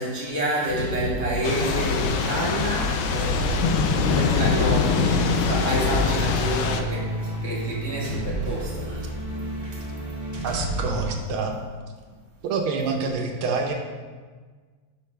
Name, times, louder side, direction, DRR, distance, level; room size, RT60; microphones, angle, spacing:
voice 1, 0.0-9.1 9.6-9.8, right 1 dB, 15° left, -7 dB, 0.6 m, -29 dB
sound 1, 0.7-11.1, equal, 25° right, 0.3 m, -31 dB
Thunder / Rain, 1.4-6.8, left 5 dB, 75° left, 1.3 m, -23 dB
voice 2, 10.4-11.6 12.4-13.7, right 4 dB, 80° right, 3 dB, 1.5 m, -26 dB
6.2 x 5.5 x 3.2 m, 1.5 s
omnidirectional pair, 2.3 m